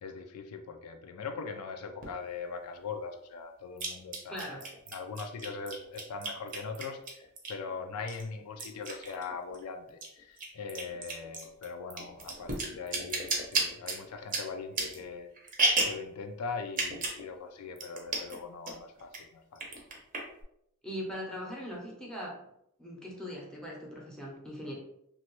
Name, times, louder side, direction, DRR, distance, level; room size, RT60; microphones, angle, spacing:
voice 1, 0.0-15.3 15.8-19.6, left 5 dB, 80° left, 6 dB, 0.4 m, -41 dB
sound 1, 2.0-2.1 3.8-7.7 8.1-9.6 9.9-16.1 16.7-17.2 17.5-17.6 17.8-18.4 18.7-19.2 19.6-20.4, right 3 dB, 35° right, 0.6 m, -33 dB
voice 2, 4.3-4.6 20.8-22.4 22.8-24.8, equal, 5° left, -3 dB, 0.6 m, -40 dB
3.0 x 2.2 x 3.0 m, 0.77 s
head